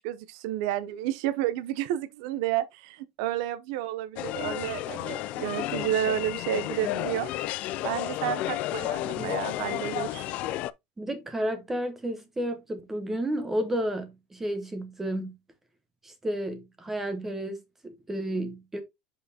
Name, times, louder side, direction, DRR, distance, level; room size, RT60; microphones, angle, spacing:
voice 1, 0.0-7.3 7.8-10.3, right 12 dB, 70° right, 0.6 m, -31 dB
sound 1, 4.2-10.7, left 14 dB, 45° left, 0.3 m, -32 dB
voice 2, 11.0-15.3 16.0-18.8, right 1 dB, 10° right, 0.9 m, -32 dB
6.3 x 5.4 x 2.8 m
cardioid pair, 170°, 3 cm